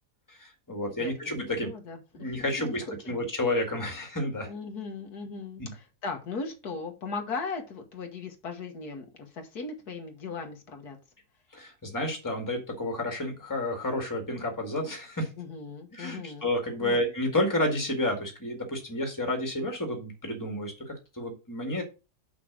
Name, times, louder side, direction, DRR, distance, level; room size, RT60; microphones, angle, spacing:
voice 1, 0.3-1.7 2.1-4.5 5.6-5.7 11.5-15.3 15.9-21.8, left 1 dB, 10° left, 3 dB, 1.9 m, -30 dB
voice 2, 1.6-2.3 2.6-3.3 4.5-11.0 15.4-16.5 16.8-17.0, left 4 dB, 70° left, 4 dB, 1.8 m, -38 dB
6.0 x 5.4 x 6.1 m, 0.30 s
omnidirectional pair, 1.7 m